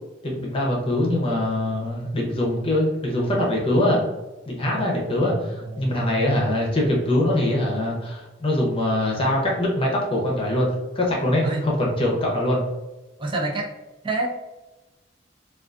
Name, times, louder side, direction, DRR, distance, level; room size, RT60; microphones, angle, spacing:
voice 1, 0.2-4.0 4.5-10.7 10.9-12.6, left 1 dB, 30° left, -2 dB, 0.8 m, -23 dB
voice 2, 5.1-6.3 11.4-11.6 13.2-13.7 14.0-14.3, right 2 dB, 25° right, 0 dB, 0.6 m, -28 dB
3.7 x 2.4 x 2.4 m, 1.1 s
head